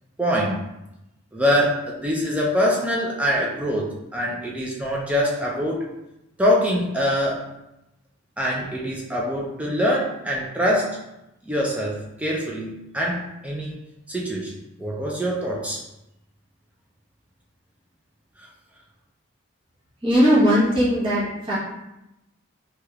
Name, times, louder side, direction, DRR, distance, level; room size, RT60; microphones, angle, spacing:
voice 1, 0.2-0.6 1.3-5.9 6.4-7.4 8.4-11.0 11.4-13.7 14.1-14.5 14.8-15.8, equal, 5° right, -3 dB, 0.3 m, -24 dB
voice 2, 20.0-21.5, equal, 25° right, -8 dB, 0.9 m, -19 dB
3.2 x 2.8 x 2.3 m, 0.90 s
head